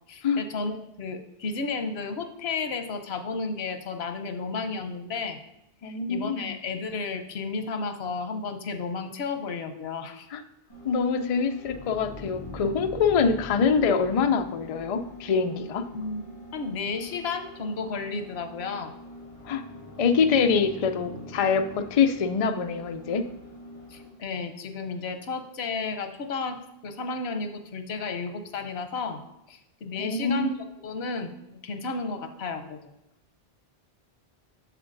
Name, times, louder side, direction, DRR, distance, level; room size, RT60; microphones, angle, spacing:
voice 1, 0.1-5.4 5.8-10.3 15.9-16.2 16.5-18.9 23.9-29.2 29.5-30.5 30.8-32.8, left 4 dB, 90° left, 8 dB, 1.0 m, -33 dB
voice 2, 5.8-6.6 10.3-10.4 10.8-15.8 19.5-19.6 20.0-23.2 30.0-30.6, left 5 dB, 50° left, 7 dB, 0.4 m, -24 dB
sound 1, 10.7-24.2, equal, 35° left, 1.9 m, -46 dB
sound 2, 11.6-16.0 19.0-22.4, left 2 dB, 20° right, 3.0 m, -45 dB
7.9 x 6.9 x 2.5 m, 0.86 s
omnidirectional pair, 1.0 m